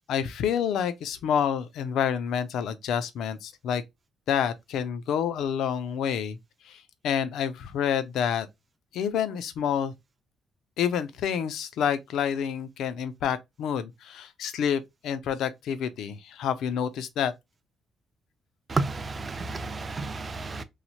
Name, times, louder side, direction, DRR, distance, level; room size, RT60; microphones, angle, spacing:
voice 1, 0.1-3.8 4.3-6.4 6.7-6.8 7.0-8.5 8.9-9.9 10.8-17.3, left 8 dB, 80° left, 0.4 m, -28 dB
voice 2, 18.7-20.6, right 3 dB, 35° right, 0.4 m, -31 dB
3.1 x 2.0 x 2.7 m
cardioid pair, 90°, 0 cm